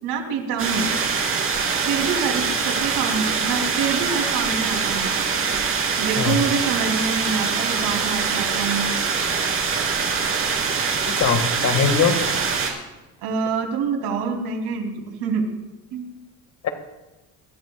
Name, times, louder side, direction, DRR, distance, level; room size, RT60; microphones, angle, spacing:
voice 1, 0.0-0.9 1.8-5.2 6.0-8.9 13.2-15.5 15.9-16.1, right 5 dB, 85° right, 1 dB, 3.1 m, -26 dB
sound 1, 0.6-12.7, right 5 dB, 35° right, 3.0 m, -23 dB
voice 2, 11.1-12.2 16.6-16.7, left 6 dB, 50° left, 6 dB, 1.9 m, -21 dB
25.0 x 13.5 x 2.4 m, 1.1 s
cardioid pair, 130°, 37 cm